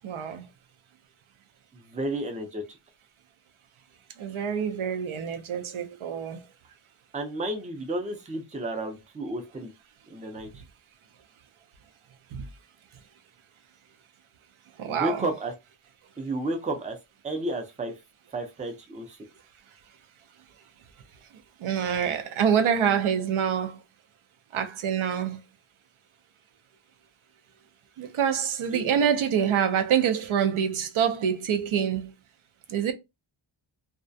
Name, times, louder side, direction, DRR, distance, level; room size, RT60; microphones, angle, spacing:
voice 1, 0.0-0.5 4.2-6.4 12.3-12.4 14.8-15.3 21.6-23.8 24.5-25.4 28.0-32.1 32.7-32.9, right 8 dB, 80° right, 0.6 m, -26 dB
voice 2, 1.7-2.6 7.1-9.7 10.1-10.5 14.8-15.5 16.2-17.0 17.2-17.9 18.3-19.2 28.7-29.0, right 1 dB, 15° right, 0.4 m, -32 dB
2.3 x 2.1 x 2.5 m
wide cardioid pair, 125°, 48 cm